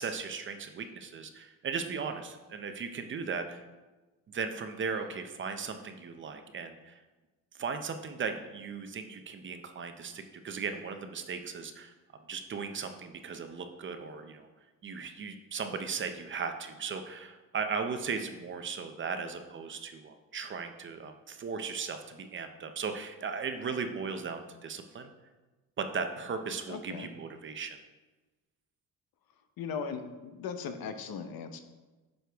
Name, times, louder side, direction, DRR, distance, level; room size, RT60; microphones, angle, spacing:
voice 1, 0.0-3.6 4.3-7.0 7.6-11.9 12.3-14.5 14.8-25.1 25.8-27.8, right 5 dB, 35° right, 7 dB, 0.6 m, -37 dB
voice 2, 26.7-27.1 29.6-31.6, left 6 dB, 85° left, 8 dB, 0.9 m, -38 dB
9.3 x 6.4 x 3.4 m, 1.2 s
cardioid pair, 170°, 35 cm